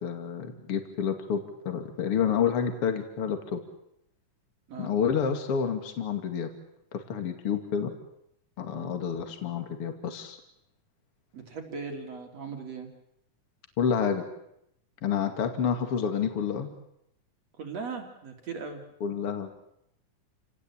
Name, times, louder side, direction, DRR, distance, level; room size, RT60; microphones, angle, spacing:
voice 1, 0.0-3.6 4.8-6.5 6.9-7.9 8.6-10.4 13.8-14.2 15.0-16.7 19.0-19.5, left 7 dB, 45° left, 6 dB, 3.0 m, -29 dB
voice 2, 11.3-12.9 17.6-18.8, right 5 dB, 55° right, 3 dB, 4.1 m, -38 dB
29.0 x 18.5 x 8.6 m, 0.78 s
omnidirectional pair, 3.6 m